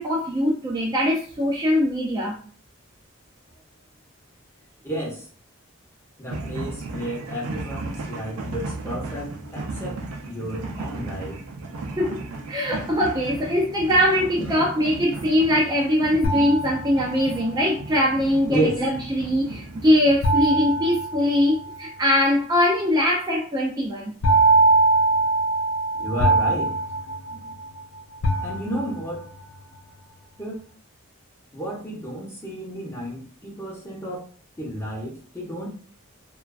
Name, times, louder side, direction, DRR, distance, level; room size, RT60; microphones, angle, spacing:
voice 1, 0.0-2.4 12.0-12.2 12.5-24.1, left 1 dB, 20° right, -3 dB, 0.3 m, -22 dB
voice 2, 4.8-5.2 6.2-10.0 10.3-11.4 13.3-13.4 14.4-14.7 18.5-18.8 26.0-26.7 28.4-29.3 30.4-30.6 31.5-34.3 34.6-35.7, right 1 dB, 10° left, -4 dB, 0.6 m, -31 dB
sound 1, 6.3-20.2, right 3 dB, 90° right, 0.4 m, -35 dB
sound 2, 16.2-17.4 20.2-21.9 24.2-27.8 28.2-29.2, right 2 dB, 65° left, 0.4 m, -22 dB
2.4 x 2.2 x 2.2 m, 0.43 s
head